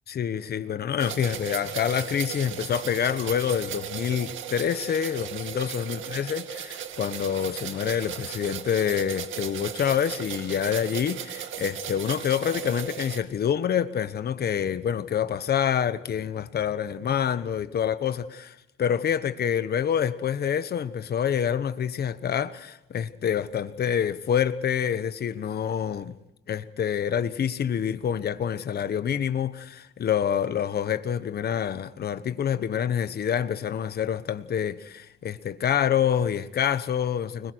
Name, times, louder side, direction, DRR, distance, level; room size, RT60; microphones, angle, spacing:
voice 1, 0.1-26.2 26.5-37.5, left 8 dB, 55° left, 1.1 m, -27 dB
sound 1, 1.0-13.2, right 9 dB, 80° right, 2.2 m, -36 dB
30.0 x 21.0 x 4.7 m
cardioid pair, 90°, 20 cm